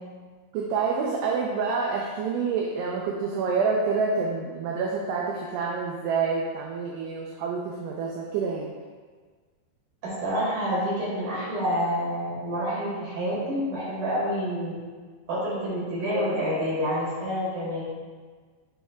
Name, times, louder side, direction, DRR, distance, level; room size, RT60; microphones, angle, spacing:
voice 1, 0.5-8.7, right 5 dB, 80° right, -2 dB, 2.4 m, -27 dB
voice 2, 10.0-14.7 15.3-17.8, equal, 50° right, -9 dB, 3.0 m, -28 dB
10.5 x 4.6 x 2.3 m, 1.5 s
omnidirectional pair, 5.3 m